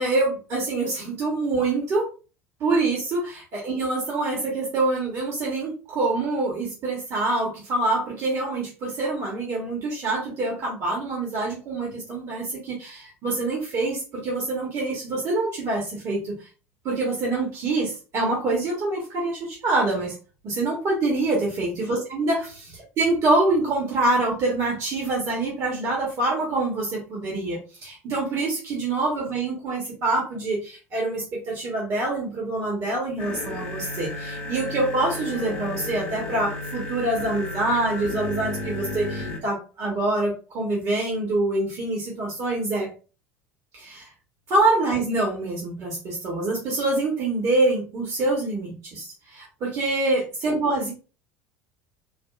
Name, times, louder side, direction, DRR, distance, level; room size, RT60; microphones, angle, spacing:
voice 1, 0.0-2.1 2.6-16.5 16.8-20.1 20.4-42.9 43.7-44.1 44.5-50.9, right 2 dB, 40° right, -2 dB, 1.1 m, -25 dB
sound 1, 33.2-39.4, left 2 dB, 60° left, 0.7 m, -33 dB
3.4 x 2.3 x 2.4 m, 0.34 s
figure-of-eight pair, 70°, 8 cm